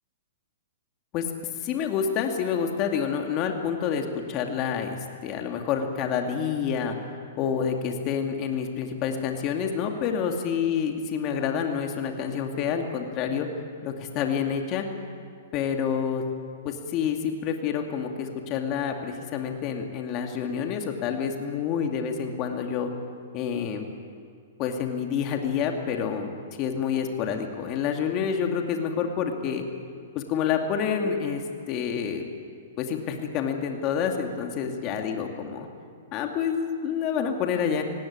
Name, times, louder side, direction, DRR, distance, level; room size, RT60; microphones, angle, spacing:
voice 1, 1.6-6.9 7.4-13.5 13.8-14.8 15.5-16.2 16.6-22.9 23.3-23.9 24.6-26.3 26.6-29.6 30.1-32.3 32.8-35.7 36.1-37.8, left 7 dB, 35° left, 3 dB, 2.4 m, -28 dB
19.0 x 16.5 x 9.6 m, 2.2 s
hypercardioid pair, 145°, 0 cm